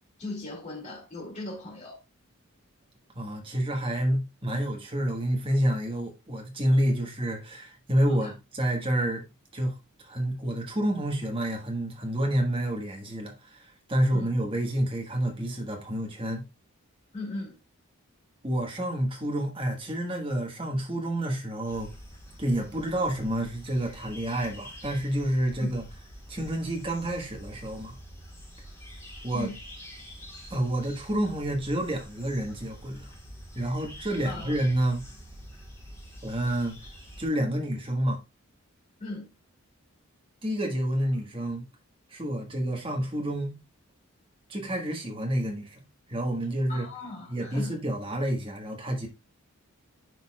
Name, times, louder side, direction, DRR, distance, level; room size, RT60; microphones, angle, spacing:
voice 1, 0.2-2.0 8.1-8.3 14.1-14.3 17.1-17.6 25.6-25.7 29.3-29.6 34.2-34.6 39.0-39.3 46.7-47.8, left 2 dB, 35° left, 2.4 m, -38 dB
voice 2, 3.1-9.2 9.5-16.4 18.4-21.9 22.4-25.8 26.3-28.0 29.2-29.5 30.5-33.1 33.5-35.0 36.2-36.8 37.2-38.2 40.4-41.6 42.1-43.6 44.5-45.8 46.1-46.9 47.3-49.1, right 1 dB, 25° right, 1.4 m, -29 dB
sound 1, 21.7-37.3, equal, 15° left, 1.9 m, -46 dB
10.5 x 4.1 x 2.3 m
head